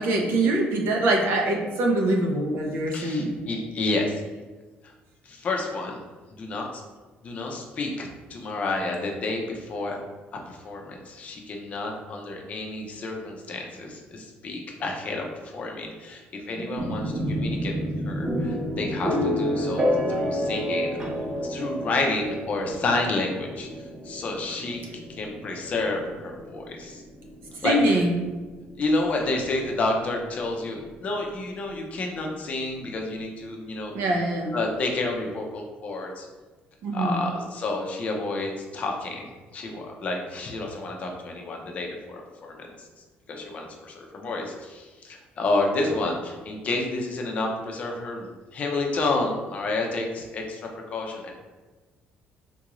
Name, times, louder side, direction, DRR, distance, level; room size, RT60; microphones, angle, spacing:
voice 1, 0.0-3.3 16.5-16.9 27.6-28.2 33.9-34.5 36.8-37.2, right 1 dB, 70° right, 1 dB, 0.6 m, -24 dB
voice 2, 2.9-4.2 5.2-6.0 6.3-6.7 7.2-10.0 10.5-17.7 18.0-21.0 21.4-24.8 25.2-27.0 27.6-28.0 28.8-34.2 34.5-36.3 36.9-42.9 43.3-51.3, left 2 dB, 35° left, 1 dB, 0.5 m, -30 dB
sound 1, 16.8-30.5, equal, 20° right, 0.5 m, -30 dB
3.7 x 2.4 x 3.0 m, 1.3 s
cardioid pair, 165°, 4 cm